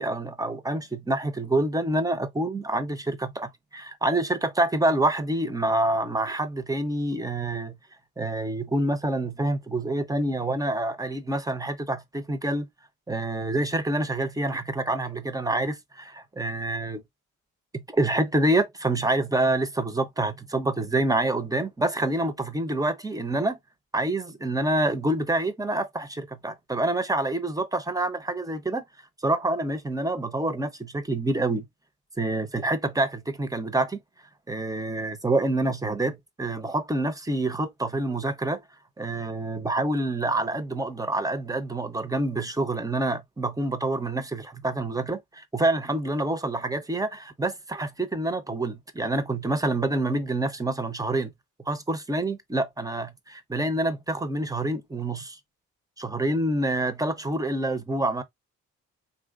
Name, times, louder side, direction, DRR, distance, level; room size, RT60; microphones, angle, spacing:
voice 1, 0.0-7.8 8.2-12.7 13.1-17.0 17.7-23.6 23.9-28.8 29.2-31.7 32.2-34.0 34.5-38.6 39.0-51.3 51.7-55.4 56.0-58.2, right 2 dB, 10° right, 0.7 m, -27 dB
4.0 x 2.9 x 2.4 m
supercardioid pair, 65°, 32 cm